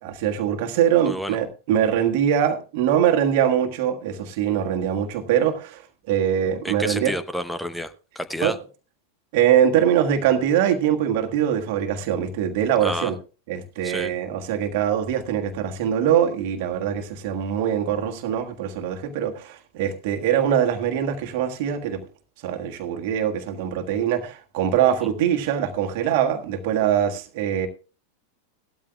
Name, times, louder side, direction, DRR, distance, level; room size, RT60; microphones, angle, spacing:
voice 1, 0.0-5.8 6.1-7.1 8.4-8.5 9.3-13.1 13.5-22.0 22.4-27.7, right 9 dB, 50° right, 1.5 m, -23 dB
voice 2, 1.0-1.4 6.6-8.6 12.8-13.1 13.8-14.1, equal, 5° left, 0.8 m, -29 dB
17.5 x 12.5 x 2.3 m
figure-of-eight pair, 90°, 0 cm